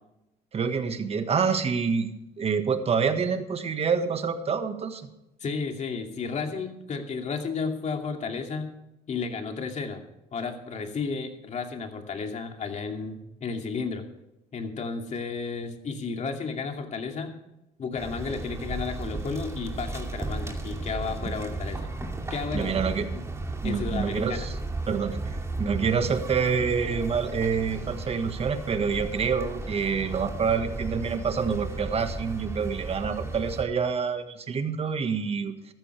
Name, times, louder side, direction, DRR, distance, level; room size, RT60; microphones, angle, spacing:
voice 1, 0.5-5.1 21.2-21.3 22.5-23.1 23.6-24.5 24.9-35.5, right 6 dB, 35° right, 8 dB, 1.6 m, -27 dB
voice 2, 5.4-8.7 9.1-10.0 10.3-14.0 14.5-17.3 17.8-21.9 22.3-22.8 23.1-23.2 23.6-24.5, left 5 dB, 45° left, 3 dB, 2.5 m, -33 dB
sound 1, 17.9-33.6, right 2 dB, 15° right, 2.5 m, -34 dB
14.0 x 13.5 x 3.4 m, 0.91 s
cardioid pair, 110°, 17 cm